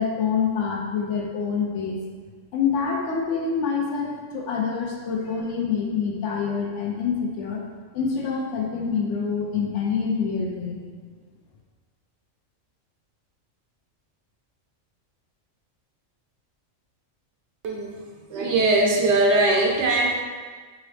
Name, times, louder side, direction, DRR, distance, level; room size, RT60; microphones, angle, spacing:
voice 1, 0.0-2.0 2.5-7.6 7.9-10.8, left 6 dB, 70° left, 0 dB, 0.8 m, -26 dB
voice 2, 17.6-18.0 18.3-20.1, right 2 dB, 65° right, 0 dB, 0.8 m, -20 dB
3.7 x 3.0 x 3.2 m, 1.5 s
omnidirectional pair, 1.4 m